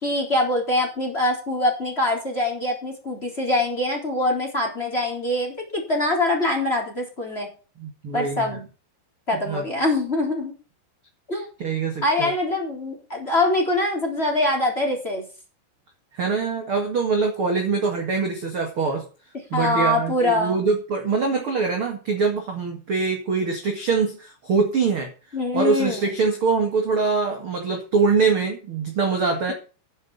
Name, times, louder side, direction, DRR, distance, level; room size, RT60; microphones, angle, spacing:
voice 1, 0.0-7.5 8.1-8.6 9.3-10.5 11.3-11.5 12.0-15.2 19.5-20.6 25.3-26.1, left 1 dB, 15° left, 2 dB, 3.3 m, -24 dB
voice 2, 7.8-8.6 9.4-9.6 11.6-12.3 16.1-19.0 19.5-25.1 25.5-29.5, right 4 dB, 55° right, 2 dB, 1.5 m, -23 dB
10.5 x 10.5 x 5.4 m, 0.35 s
omnidirectional pair, 5.6 m